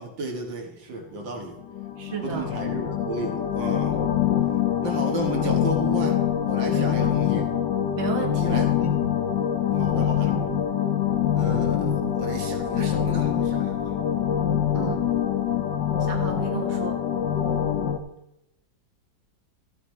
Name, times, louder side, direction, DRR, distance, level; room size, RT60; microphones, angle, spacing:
voice 1, 0.0-1.5 2.2-4.0 4.8-7.4 8.4-8.9 9.8-10.3 11.4-13.9, right 2 dB, 85° right, 2 dB, 2.4 m, -33 dB
sound 1, 1.6-18.0, left 9 dB, 75° left, 1.5 m, -24 dB
voice 2, 2.0-2.5 6.7-7.1 8.0-8.6 14.7-15.1 16.0-17.0, right 6 dB, 40° right, 2 dB, 1.6 m, -33 dB
14.5 x 8.4 x 3.2 m, 0.89 s
omnidirectional pair, 2.0 m